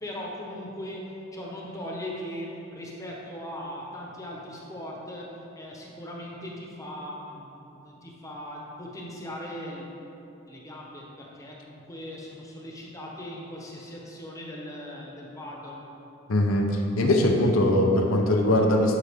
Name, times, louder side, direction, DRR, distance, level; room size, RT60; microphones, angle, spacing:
voice 1, 0.0-5.3 5.5-9.9 10.5-15.9, left 1 dB, 15° left, -3 dB, 1.0 m, -39 dB
voice 2, 16.3-19.0, left 1 dB, 90° left, 1 dB, 0.8 m, -21 dB
11.0 x 5.5 x 3.6 m, 3.0 s
head